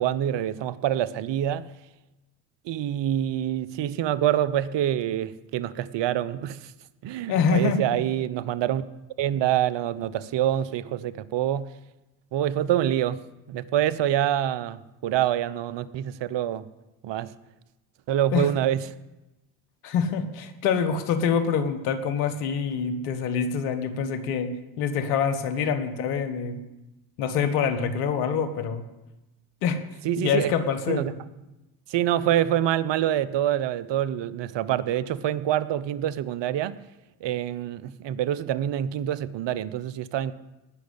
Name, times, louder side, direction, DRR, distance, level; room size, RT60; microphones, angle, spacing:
voice 1, 0.0-1.7 2.6-6.7 7.0-8.8 9.2-11.7 12.3-16.7 17.0-17.3 18.1-18.9 30.0-30.5 30.9-31.1 31.9-36.8 37.2-40.3, right 11 dB, 60° right, 16 dB, 1.0 m, -26 dB
voice 2, 7.3-7.8 18.3-18.5 19.8-24.5 24.8-26.6 27.2-28.8 29.6-29.8 30.2-31.2, left 6 dB, 90° left, 9 dB, 1.6 m, -25 dB
18.0 x 6.3 x 10.0 m, 1.0 s
hypercardioid pair, 60°, 48 cm